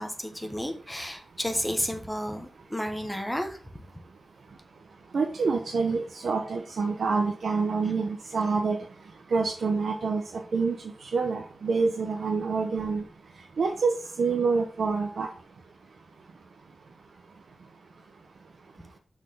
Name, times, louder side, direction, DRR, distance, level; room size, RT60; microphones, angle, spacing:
voice 1, 0.0-3.6, equal, 5° left, 1.1 m, -32 dB
voice 2, 5.1-8.8 9.3-10.2 10.5-10.8 11.1-13.0 13.6-13.9 14.2-15.3, right 4 dB, 75° right, 0.9 m, -26 dB
5.9 x 4.5 x 5.2 m
wide cardioid pair, 130°, 0 cm